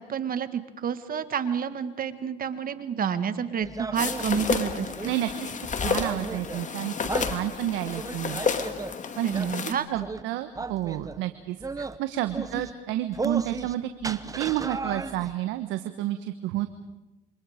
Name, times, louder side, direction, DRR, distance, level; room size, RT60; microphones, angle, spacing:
voice 1, 0.0-5.1 9.2-9.9 12.4-12.5, right 7 dB, 50° right, 11 dB, 1.8 m, -29 dB
sound 1, 3.6-5.1 5.7-6.6 7.1-7.4 7.9-8.9 9.3-9.5 10.0-10.2 10.6-11.2 11.6-12.0 12.3-12.7 13.1-13.7 14.0-15.3, right 3 dB, 20° right, 1.1 m, -35 dB
sound 2, 3.9-9.7, left 5 dB, 40° left, 2.3 m, -31 dB
voice 2, 5.0-5.5 5.8-6.9 7.3-8.4 9.2-9.3 9.7-16.7, right 13 dB, 80° right, 9 dB, 1.3 m, -30 dB
28.5 x 25.0 x 5.1 m, 1.0 s
supercardioid pair, 85°, 19 cm